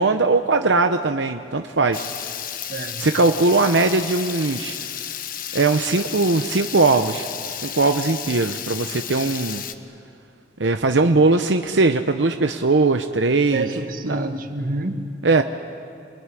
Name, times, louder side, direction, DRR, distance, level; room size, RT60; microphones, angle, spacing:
voice 1, 0.0-2.0 3.0-4.8 5.5-7.3 7.6-9.6 10.6-13.7 14.1-14.3 15.2-15.4, right 3 dB, 80° right, 7 dB, 0.9 m, -19 dB
Water tap faucet / Liquid, 1.9-9.7, left 9 dB, 50° left, 1.2 m, -32 dB
voice 2, 2.7-3.1 13.5-15.1, right 2 dB, 50° right, 6 dB, 1.7 m, -28 dB
27.5 x 21.5 x 9.9 m, 2.4 s
head